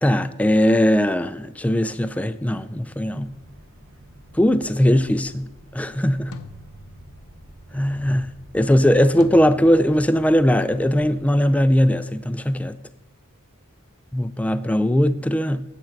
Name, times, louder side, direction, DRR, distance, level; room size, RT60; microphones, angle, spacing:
voice 1, 0.0-3.3 4.3-6.3 7.7-8.3 8.5-12.8 14.1-15.6, equal, 5° left, 0.3 m, -19 dB
sound 1, 3.2-11.6, equal, 65° right, 1.9 m, -47 dB
sound 2, 6.3-7.5 9.2-9.3, left 3 dB, 85° left, 0.7 m, -44 dB
8.8 x 7.8 x 5.8 m
head